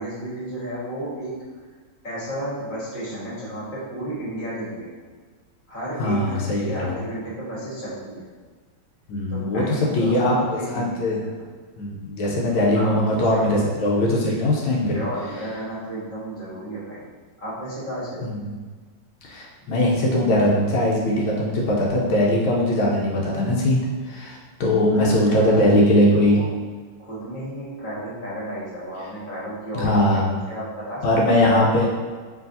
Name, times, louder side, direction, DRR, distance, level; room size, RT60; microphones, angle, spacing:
voice 1, 0.0-1.3 2.0-4.9 5.7-8.2 9.3-11.3 12.7-13.0 13.3-13.5 14.9-17.0 17.4-18.3 19.6-19.7 24.8-26.1 26.3-26.5 27.0-31.3, right 1 dB, 30° left, -8 dB, 1.5 m, -33 dB
voice 2, 6.0-7.0 9.1-11.2 11.8-15.0 18.2-18.6 19.3-26.4 29.7-30.4 31.0-31.9, left 1 dB, 85° left, -3 dB, 1.5 m, -20 dB
4.6 x 3.3 x 2.7 m, 1.5 s
omnidirectional pair, 2.1 m